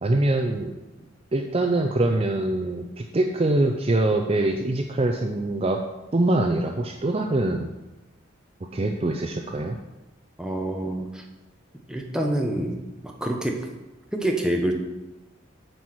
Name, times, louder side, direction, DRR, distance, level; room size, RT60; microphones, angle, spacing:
voice 1, 0.0-0.8 1.3-5.8 6.1-7.7 8.7-9.8, right 2 dB, 30° right, 3 dB, 0.5 m, -24 dB
voice 2, 10.4-11.2 11.9-12.8 13.0-13.7 14.1-14.7, right 1 dB, 5° right, 1 dB, 1.0 m, -26 dB
9.4 x 4.7 x 6.0 m, 1.1 s
head